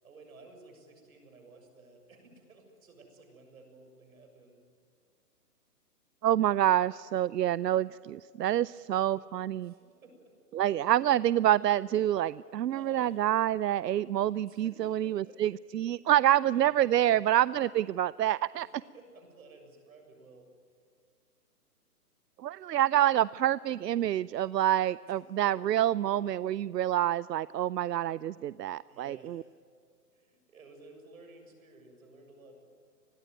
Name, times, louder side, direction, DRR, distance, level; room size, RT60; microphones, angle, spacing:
voice 1, 0.0-4.6 8.7-9.3 9.6-10.4 12.7-13.3 14.5-15.4 16.3-17.3 18.6-20.5 25.0-25.6 28.9-29.6 30.1-32.7, right 3 dB, 55° right, 4 dB, 6.9 m, -55 dB
voice 2, 6.2-9.7 10.5-18.7 22.4-29.4, right 12 dB, 80° right, 19 dB, 0.6 m, -27 dB
29.0 x 20.5 x 9.4 m, 2.1 s
hypercardioid pair, 175°, 48 cm